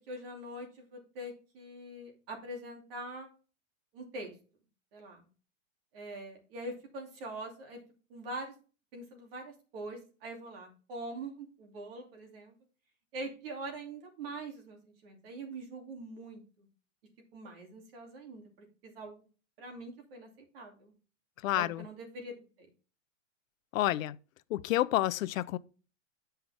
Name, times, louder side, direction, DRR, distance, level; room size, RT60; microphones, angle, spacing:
voice 1, 0.1-3.3 3.9-4.3 4.9-5.2 5.9-7.8 8.1-8.5 8.9-12.5 13.1-16.7 17.3-18.5 18.8-19.2 19.6-20.9 21.5-22.3 22.6-22.7, right 2 dB, 45° right, 2.7 m, -43 dB
voice 2, 21.4-21.8 23.7-24.2 24.5-25.6, left 15 dB, 90° left, 0.6 m, -29 dB
8.8 x 5.7 x 3.5 m
supercardioid pair, 180°, 39 cm